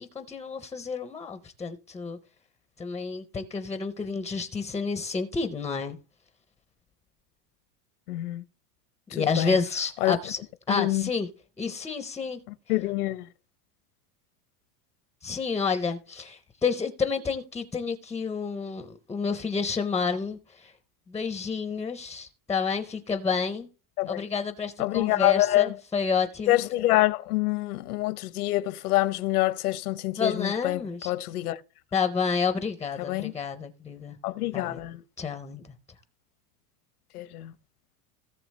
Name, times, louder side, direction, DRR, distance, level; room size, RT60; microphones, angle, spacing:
voice 1, 0.1-2.2 2.8-6.0 9.1-11.3 11.6-12.4 15.2-20.7 21.1-23.7 24.1-26.6 30.2-31.1 31.9-34.2 34.5-34.8 35.2-35.6, left 5 dB, 5° left, 0.4 m, -30 dB
voice 2, 8.1-8.4 9.1-9.6 10.0-10.2 10.7-11.1 12.7-13.3 24.0-24.2 24.8-25.8 26.5-31.6 33.0-33.3 34.2-35.0 37.1-37.5, left 17 dB, 90° left, 0.9 m, -26 dB
17.5 x 6.7 x 3.1 m
supercardioid pair, 140°, 43 cm